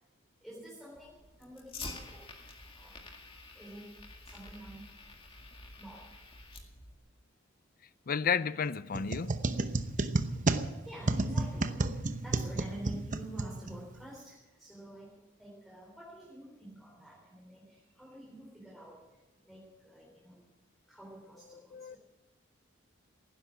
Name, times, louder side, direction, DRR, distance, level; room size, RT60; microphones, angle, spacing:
voice 1, 0.4-2.2 2.8-3.0 3.5-3.9 4.3-4.9 5.8-6.1 10.9-19.0 19.4-20.4 20.9-22.0, right 1 dB, ahead, 3.7 m, -49 dB
Fire, 1.0-7.0, left 3 dB, 25° left, 2.0 m, -48 dB
voice 2, 8.1-9.4 21.7-22.0, left 6 dB, 45° left, 0.5 m, -32 dB
sound 1, 8.9-14.0, right 2 dB, 40° right, 0.9 m, -32 dB
17.5 x 10.5 x 7.6 m
head